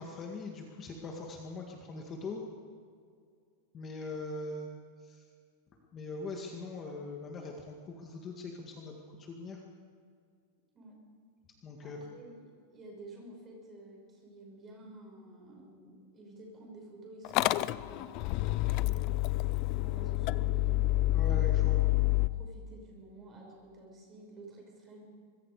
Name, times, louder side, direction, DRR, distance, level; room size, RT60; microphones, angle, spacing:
voice 1, 0.0-2.4 3.7-4.7 5.0-5.3 5.9-9.6 11.6-12.0 21.1-21.8, left 3 dB, 20° left, 0 dB, 2.0 m, -41 dB
voice 2, 11.8-19.2 19.7-21.6 22.0-25.0, right 1 dB, 20° right, 0 dB, 5.9 m, -51 dB
Motor vehicle (road) / Engine starting, 17.2-22.3, left 17 dB, 35° left, 0.5 m, -28 dB
24.5 x 21.5 x 5.0 m, 2.2 s
supercardioid pair, 165°, 0 cm